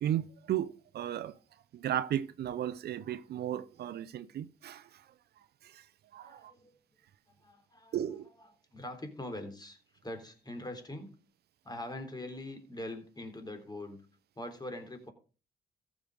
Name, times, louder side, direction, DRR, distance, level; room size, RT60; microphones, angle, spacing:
voice 1, 0.0-1.4 1.7-5.1 5.6-5.9 6.1-6.5 7.9-8.3, right 11 dB, 70° right, 0.7 m, -35 dB
voice 2, 6.2-6.7 7.4-8.0 8.7-11.1 11.6-14.1 14.4-15.1, left 1 dB, 25° left, 3.6 m, -43 dB
14.5 x 6.2 x 5.2 m
supercardioid pair, 50°, 17 cm